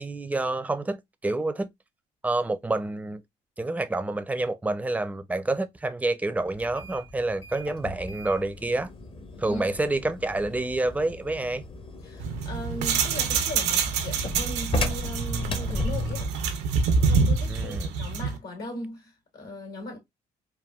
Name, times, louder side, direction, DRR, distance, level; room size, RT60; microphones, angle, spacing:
voice 1, 0.0-1.7 2.2-3.2 3.6-8.9 9.4-11.6 17.5-17.9, right 2 dB, 10° right, 0.4 m, -28 dB
sound 1, 6.5-16.4, left 2 dB, 30° left, 0.6 m, -35 dB
voice 2, 12.0-16.3 17.0-20.0, left 1 dB, 70° left, 1.7 m, -38 dB
sound 2, 12.2-18.4, right 5 dB, 85° right, 0.5 m, -26 dB
3.4 x 2.2 x 2.2 m
supercardioid pair, 60°, 17 cm